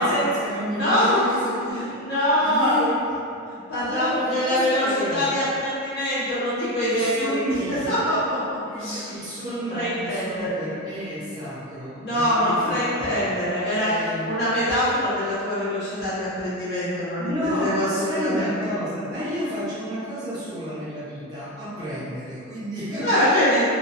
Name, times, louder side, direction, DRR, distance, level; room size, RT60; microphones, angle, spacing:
voice 1, 0.0-2.1 2.4-3.0 3.8-5.3 6.8-7.8 8.6-12.8 13.8-14.3 17.2-23.6, equal, 20° right, -12 dB, 0.9 m, -31 dB
voice 2, 0.8-1.2 1.8-2.7 3.5-9.1 9.4-10.6 12.0-13.9 14.2-18.7 23.0-23.6, left 1 dB, 55° left, -12 dB, 1.2 m, -24 dB
2.9 x 2.4 x 2.6 m, 2.5 s
head